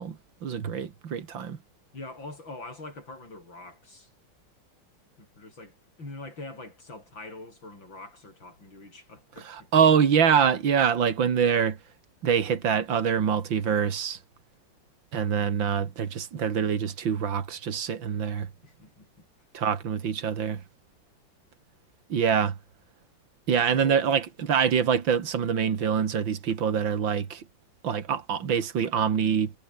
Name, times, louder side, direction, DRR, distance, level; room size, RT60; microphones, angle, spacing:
voice 1, 0.0-1.6 9.4-11.8 12.2-14.2 15.1-18.5 19.5-20.6 22.1-22.6 23.5-27.4 27.8-29.5, right 7 dB, 80° right, 2.7 m, -25 dB
voice 2, 1.9-4.1 5.2-9.7 18.6-19.3 23.7-24.1 24.4-24.5, left 2 dB, 90° left, 8.7 m, -44 dB
omnidirectional pair, 2.0 m